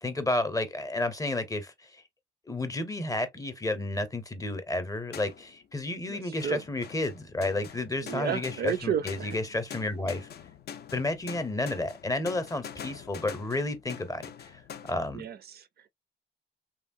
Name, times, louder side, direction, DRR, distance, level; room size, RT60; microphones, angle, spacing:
voice 1, 0.0-1.7 2.5-10.3 10.9-14.5 14.9-15.2, left 2 dB, 15° left, 0.7 m, -31 dB
sound 1, 5.1-5.7 6.4-14.9, left 8 dB, 55° left, 0.4 m, -45 dB
voice 2, 6.1-6.6 8.0-9.4 15.1-15.9, right 8 dB, 55° right, 0.4 m, -32 dB
2.9 x 2.2 x 2.5 m
cardioid pair, 90°, 20 cm